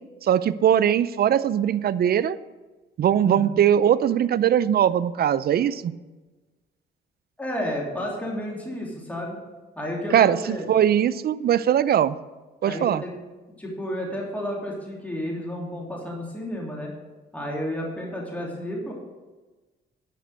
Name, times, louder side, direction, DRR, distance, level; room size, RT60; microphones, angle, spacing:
voice 1, 0.2-2.4 3.0-5.9 10.1-12.2 12.6-13.0, right 10 dB, 50° right, 16 dB, 0.5 m, -20 dB
voice 2, 3.2-3.6 7.4-9.4 9.7-10.6 12.6-13.1 13.6-16.9 17.3-18.9, equal, 5° left, -3 dB, 3.1 m, -31 dB
11.0 x 6.0 x 6.8 m, 1.2 s
cardioid pair, 90°, 20 cm